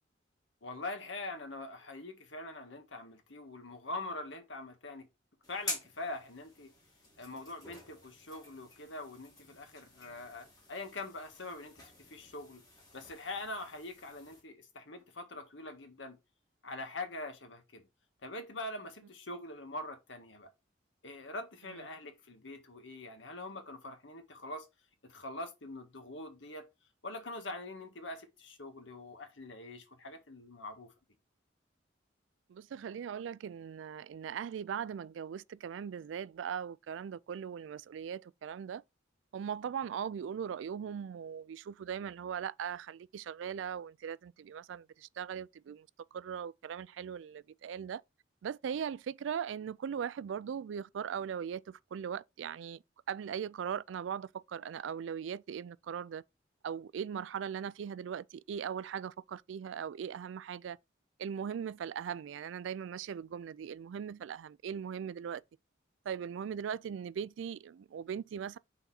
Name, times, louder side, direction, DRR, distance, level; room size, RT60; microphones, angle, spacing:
voice 1, 0.6-5.1 5.5-6.7 7.2-12.6 12.9-16.2 16.6-17.8 18.2-20.5 21.0-24.7 25.0-26.6 27.0-30.9, left 2 dB, 75° left, 1.5 m, -43 dB
sound 1, 5.4-14.4, left 2 dB, 20° left, 2.3 m, -48 dB
voice 2, 32.5-38.8 39.3-48.0 48.4-52.8 53.1-56.2 56.6-60.8 61.2-65.4 66.1-68.6, right 8 dB, 75° right, 0.3 m, -39 dB
5.7 x 4.1 x 4.1 m
head